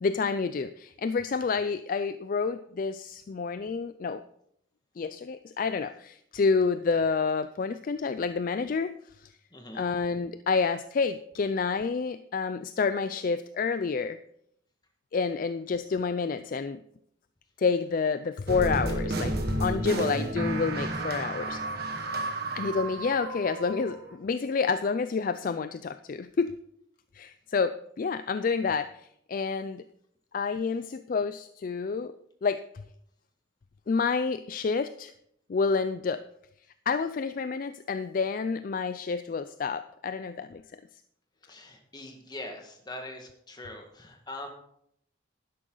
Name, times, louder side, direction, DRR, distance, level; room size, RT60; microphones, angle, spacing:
voice 1, 0.0-4.2 5.0-8.9 9.7-14.2 15.1-16.8 17.6-19.3 19.6-21.6 22.5-26.5 27.1-28.9 29.3-29.8 30.3-32.1 32.4-32.6 33.9-35.1 35.5-36.2 36.9-40.6, left 5 dB, 45° left, 12 dB, 0.3 m, -29 dB
voice 2, 9.5-9.9 18.9-19.0 41.5-44.5, left 1 dB, 20° left, 3 dB, 1.7 m, -42 dB
sound 1, 18.5-24.1, right 1 dB, 50° right, 1.5 m, -31 dB
11.5 x 11.0 x 3.9 m, 0.72 s
head